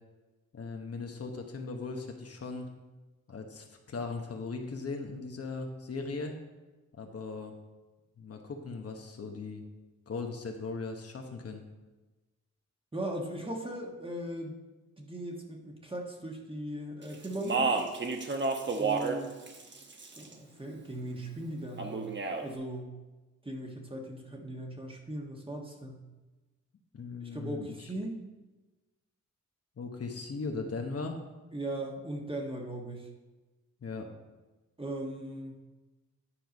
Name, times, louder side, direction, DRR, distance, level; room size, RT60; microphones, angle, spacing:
voice 1, 0.5-2.7 3.3-6.4 6.9-7.5 8.2-9.6 10.1-11.6 26.9-27.9 29.8-31.2 33.8-34.1, left 4 dB, 50° left, 3 dB, 1.0 m, -38 dB
voice 2, 12.9-14.6 15.0-17.8 18.8-19.3 20.1-22.1 22.4-22.9 23.4-26.0 27.2-28.2 31.5-33.1 34.8-35.6, right 1 dB, 20° right, 0 dB, 1.3 m, -38 dB
Speech, 17.2-19.2 19.5-20.3 21.8-22.4, right 4 dB, 40° right, 1.0 m, -30 dB
10.0 x 4.6 x 5.2 m, 1.2 s
wide cardioid pair, 105°, 30 cm